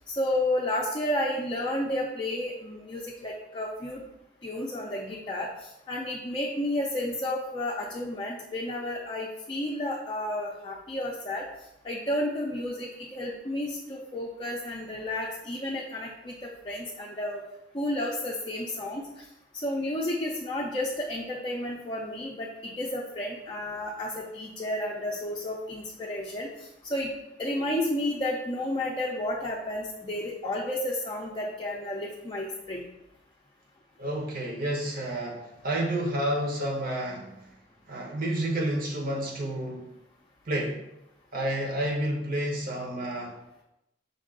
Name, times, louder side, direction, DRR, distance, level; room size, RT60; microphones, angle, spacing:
voice 1, 0.0-4.0 4.4-11.4 11.8-17.4 17.7-19.1 19.6-27.1 27.4-32.8, left 1 dB, 25° left, -3 dB, 0.5 m, -32 dB
voice 2, 34.0-37.3 37.9-39.9 40.5-40.8 41.3-43.3, right 1 dB, 55° right, -1 dB, 1.0 m, -30 dB
5.3 x 2.5 x 3.7 m, 0.85 s
head